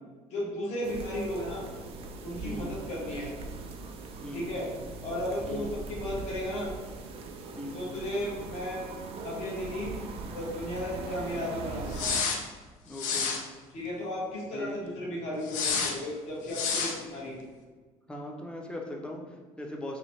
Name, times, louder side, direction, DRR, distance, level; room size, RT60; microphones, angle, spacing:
voice 1, 0.3-1.6 2.2-3.3 4.3-4.7 5.0-6.7 7.7-8.8 9.2-9.9 10.3-12.1 13.7-17.4, left 1 dB, 65° left, -6 dB, 1.3 m, -34 dB
sound 1, 0.8-12.2, right 3 dB, 50° right, 0.4 m, -41 dB
voice 2, 2.4-2.8 4.2-4.5 5.5-5.8 7.6-8.0 12.9-13.4 14.5-15.0 18.1-20.0, left 1 dB, 10° left, 1 dB, 0.5 m, -40 dB
sound 2, 11.9-12.4 12.9-13.4 15.5-15.9 16.5-17.0, left 5 dB, 85° left, 0.5 m, -29 dB
3.1 x 2.2 x 4.1 m, 1.4 s
cardioid pair, 135°, 12 cm